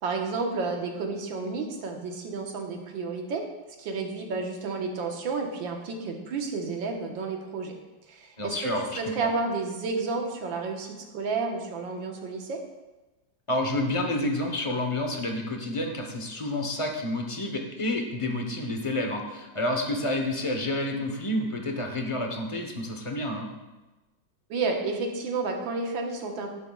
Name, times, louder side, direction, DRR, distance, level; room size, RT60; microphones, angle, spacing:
voice 1, 0.0-3.5 3.8-7.7 8.1-12.6 24.5-26.5, right 4 dB, 80° right, 2 dB, 1.9 m, -31 dB
voice 2, 8.4-9.3 13.5-23.5, left 1 dB, 25° left, 3 dB, 0.7 m, -29 dB
11.0 x 11.0 x 2.3 m, 1.1 s
omnidirectional pair, 2.1 m